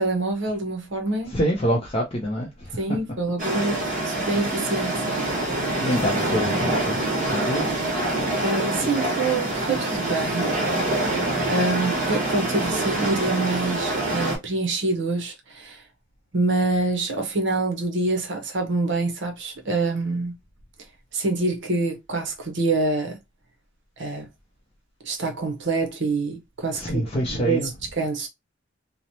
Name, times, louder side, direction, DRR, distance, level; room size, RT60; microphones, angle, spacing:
voice 1, 0.0-1.4 2.8-5.0 8.4-10.5 11.5-15.8 16.3-20.3 21.1-23.2 24.0-24.3 25.0-27.7 28.0-28.3, right 3 dB, 60° right, 0.7 m, -26 dB
voice 2, 1.3-3.0 5.8-7.0 7.2-7.6 26.7-27.7, equal, 30° left, 0.5 m, -26 dB
sound 1, 3.4-14.4, right 1 dB, 40° right, 1.1 m, -25 dB
3.0 x 2.0 x 2.6 m
head